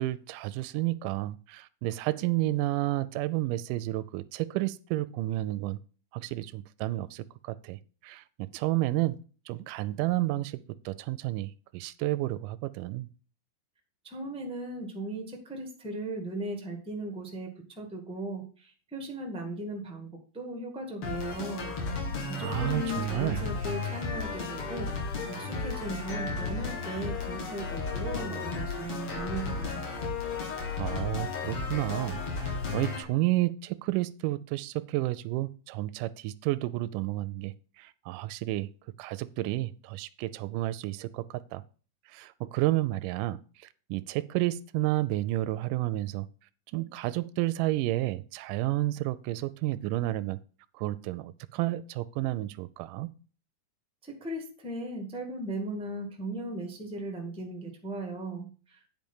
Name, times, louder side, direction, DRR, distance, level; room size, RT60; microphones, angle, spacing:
voice 1, 0.0-5.8 6.1-9.2 9.5-13.1 22.4-23.4 30.8-38.7 39.0-41.6 42.1-46.3 46.7-50.4 50.7-53.1, right 17 dB, 80° right, 2.0 m, -31 dB
voice 2, 14.0-24.9 25.3-29.9 54.0-59.0, right 1 dB, 5° right, 0.5 m, -37 dB
sound 1, 21.0-33.0, left 4 dB, 45° left, 2.8 m, -34 dB
9.2 x 5.0 x 5.5 m
omnidirectional pair, 4.0 m